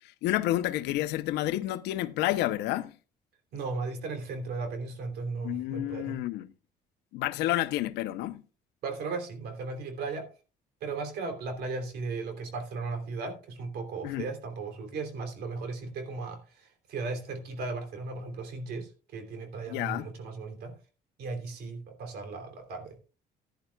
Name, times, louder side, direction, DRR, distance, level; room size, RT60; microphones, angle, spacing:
voice 1, 0.2-2.9 5.4-6.5 7.1-8.4 14.0-14.3 19.7-20.1, left 15 dB, 90° left, 0.8 m, -29 dB
voice 2, 3.5-6.2 8.8-10.3 10.8-20.8 21.2-23.0, right 4 dB, 70° right, 3.1 m, -36 dB
15.5 x 10.5 x 2.3 m
cardioid pair, 110°, 17 cm